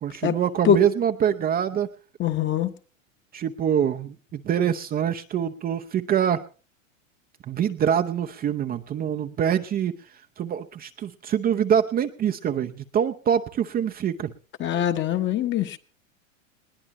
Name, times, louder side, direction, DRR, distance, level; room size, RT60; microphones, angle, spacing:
voice 1, 0.0-1.9 3.3-6.4 7.5-9.9 10.4-14.3, right 9 dB, 20° right, 0.8 m, -25 dB
voice 2, 2.2-2.7 14.6-15.8, left 9 dB, 30° left, 1.3 m, -22 dB
20.5 x 19.0 x 3.0 m
hypercardioid pair, 110°, 40 cm